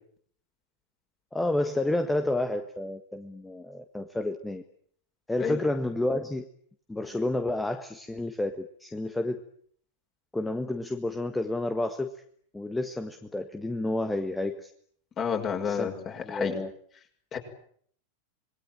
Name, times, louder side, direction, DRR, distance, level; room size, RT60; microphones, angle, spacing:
voice 1, 1.3-4.6 5.3-6.5 6.9-9.4 10.3-12.1 12.5-14.7 15.6-15.9 16.2-16.7, left 2 dB, 5° left, 8 dB, 1.6 m, -30 dB
voice 2, 15.2-16.5 17.3-17.4, left 7 dB, 30° left, 4 dB, 6.1 m, -30 dB
27.0 x 21.5 x 8.9 m, 0.63 s
figure-of-eight pair, 90°, 0 cm